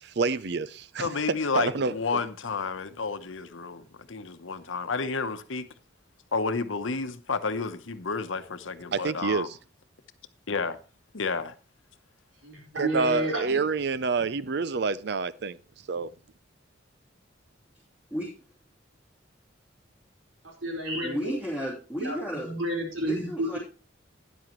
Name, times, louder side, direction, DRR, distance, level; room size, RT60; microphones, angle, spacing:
voice 1, 0.0-2.2 8.9-9.6 12.7-15.6 15.9-16.1, right 4 dB, 55° right, 0.5 m, -28 dB
voice 2, 1.0-5.7 6.3-9.5 10.5-10.8 11.1-11.5, left 4 dB, 80° left, 0.9 m, -31 dB
voice 3, 12.4-13.6 20.6-21.2 22.0-23.6, right 1 dB, 85° right, 4.3 m, -30 dB
voice 4, 21.0-22.5 23.0-23.6, equal, 10° right, 3.1 m, -33 dB
12.5 x 10.0 x 3.1 m
head